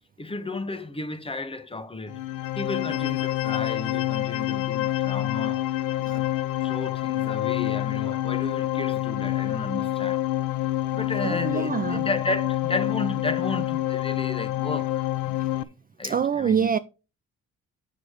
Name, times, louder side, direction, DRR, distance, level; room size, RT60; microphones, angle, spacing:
voice 1, 0.2-2.2 2.5-5.6 6.0-6.2 6.6-10.2 10.9-15.4 16.0-16.7, left 2 dB, 20° left, 1.2 m, -33 dB
sound 1, 2.1-15.6, left 14 dB, 90° left, 0.6 m, -27 dB
voice 2, 11.2-12.0 16.0-16.8, right 7 dB, 30° right, 0.4 m, -25 dB
7.1 x 6.5 x 4.7 m
cardioid pair, 90°, 30 cm